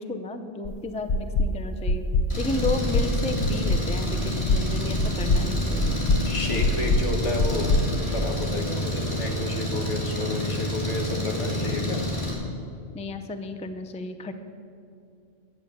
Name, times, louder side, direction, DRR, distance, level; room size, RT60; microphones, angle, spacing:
voice 1, 0.0-2.1 2.4-6.0 12.9-14.3, left 2 dB, 10° left, 8 dB, 0.4 m, -32 dB
sound 1, 0.6-0.7 1.1-1.5 1.9-2.3 2.6-3.1 3.4-3.9 4.2-4.7 5.0-5.5 5.8-6.2 6.6-7.1 7.4-8.6, left 2 dB, 55° left, 0.6 m, -23 dB
Engine, 2.3-12.3, left 1 dB, 25° left, 3.5 m, -29 dB
voice 2, 6.3-7.7 8.1-12.0, left 2 dB, 70° left, 2 dB, 1.8 m, -31 dB
11.0 x 8.5 x 7.8 m, 2.5 s
omnidirectional pair, 1.2 m